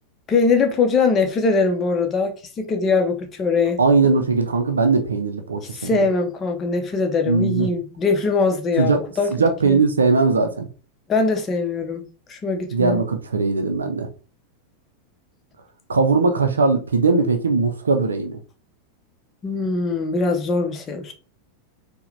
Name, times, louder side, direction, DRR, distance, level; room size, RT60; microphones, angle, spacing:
voice 1, 0.3-3.8 5.7-9.3 9.7-9.8 11.1-13.0 19.4-21.1, left 4 dB, 25° left, 0.7 m, -22 dB
voice 2, 3.8-6.0 7.3-7.7 8.8-9.0 9.4-10.7 12.7-14.1 15.9-18.4, right 4 dB, 70° right, 0.5 m, -19 dB
4.6 x 2.2 x 3.2 m
figure-of-eight pair, 90°, 0 cm